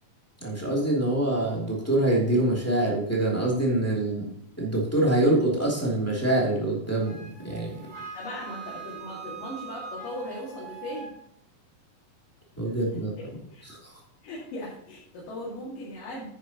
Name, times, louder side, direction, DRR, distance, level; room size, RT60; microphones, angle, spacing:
voice 1, 0.4-4.3 4.6-7.2 7.4-7.7 12.5-13.1 13.7-13.9, right 1 dB, 5° left, -4 dB, 2.1 m, -25 dB
Wind instrument woodwind instrument, 7.0-11.1, right 6 dB, 55° right, 4.2 m, -42 dB
voice 2, 7.9-11.1 12.9-13.6 14.2-16.3, left 1 dB, 70° left, -6 dB, 3.8 m, -38 dB
10.0 x 9.7 x 3.0 m, 0.74 s
omnidirectional pair, 4.2 m